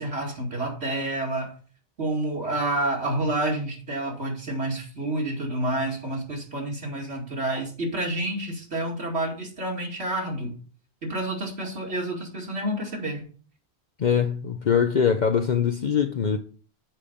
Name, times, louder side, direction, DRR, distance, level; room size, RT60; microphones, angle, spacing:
voice 1, 0.0-1.5 2.0-10.5 11.0-13.2, right 1 dB, 75° right, 2.7 m, -29 dB
voice 2, 14.0-16.4, left 7 dB, 50° left, 0.7 m, -22 dB
7.5 x 5.0 x 6.8 m
omnidirectional pair, 1.1 m